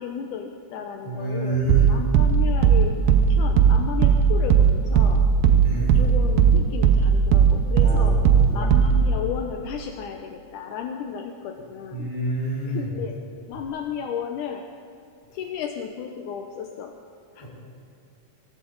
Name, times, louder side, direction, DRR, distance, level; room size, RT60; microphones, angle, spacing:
voice 1, 0.0-5.2 5.9-8.2 8.5-12.1 12.7-13.2 13.5-14.7 15.3-16.9 17.4-17.5, left 7 dB, 75° left, 3 dB, 2.1 m, -33 dB
voice 2, 1.0-1.9 5.6-5.9 7.8-8.6 11.9-12.8 17.4-17.5, right 2 dB, 10° left, -8 dB, 4.7 m, -27 dB
sound 1, 1.7-9.2, right 7 dB, 80° right, 2.5 m, -18 dB
21.5 x 13.0 x 4.0 m, 2.5 s
omnidirectional pair, 3.8 m